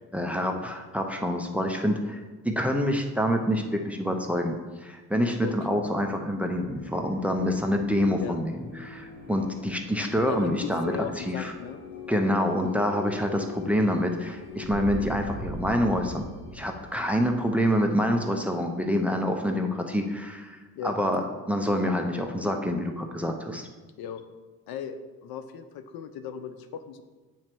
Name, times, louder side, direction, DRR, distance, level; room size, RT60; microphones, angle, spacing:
voice 1, 0.1-10.9 11.3-11.5 12.1-16.2 16.5-20.6 20.8-23.7, equal, 5° right, 3 dB, 0.5 m, -27 dB
voice 2, 5.4-5.8 8.2-8.4 10.2-11.8 20.7-20.9 24.0-24.2 24.7-27.0, left 7 dB, 80° left, 10 dB, 0.6 m, -37 dB
sound 1, 5.4-18.9, left 3 dB, 60° left, 1.5 m, -42 dB
8.7 x 3.1 x 4.5 m, 1.3 s
cardioid pair, 110°, 36 cm